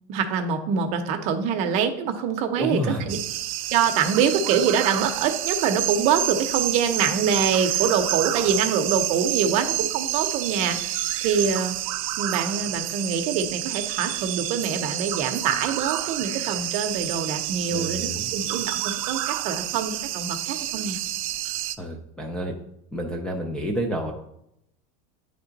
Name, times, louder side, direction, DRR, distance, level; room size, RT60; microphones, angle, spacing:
voice 1, 0.1-3.2 3.7-11.8 12.2-21.0, right 7 dB, 40° right, 6 dB, 0.7 m, -25 dB
voice 2, 2.6-3.1 17.7-18.3 21.8-22.5 22.9-24.1, equal, 5° left, 2 dB, 0.4 m, -29 dB
sound 1, 3.1-21.8, right 15 dB, 85° right, 0.4 m, -29 dB
9.7 x 3.4 x 4.0 m, 0.79 s
supercardioid pair, 170°, 17 cm